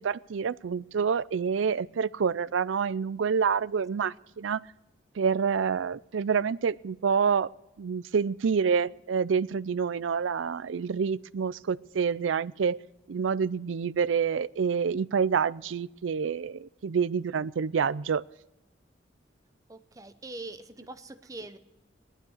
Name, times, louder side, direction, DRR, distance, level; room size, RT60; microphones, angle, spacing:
voice 1, 0.0-4.6 5.2-7.5 7.8-12.8 13.1-18.2, right 6 dB, 85° right, 18 dB, 0.4 m, -27 dB
voice 2, 19.7-21.6, right 2 dB, 20° right, 10 dB, 0.8 m, -43 dB
17.5 x 12.5 x 6.5 m, 0.96 s
head